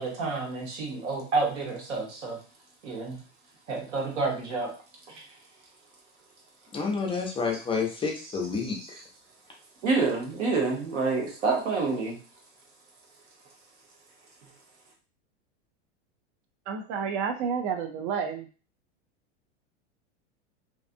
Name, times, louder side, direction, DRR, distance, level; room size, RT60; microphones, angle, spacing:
voice 1, 0.0-2.4 2.8-3.2 3.7-4.7 9.8-12.2, right 3 dB, 85° right, 0 dB, 1.1 m, -28 dB
voice 2, 6.7-9.0, left 5 dB, 15° left, 0 dB, 0.5 m, -29 dB
voice 3, 16.7-18.5, right 6 dB, 40° right, 5 dB, 0.4 m, -30 dB
2.5 x 2.4 x 2.5 m, 0.36 s
supercardioid pair, 120°, 35 cm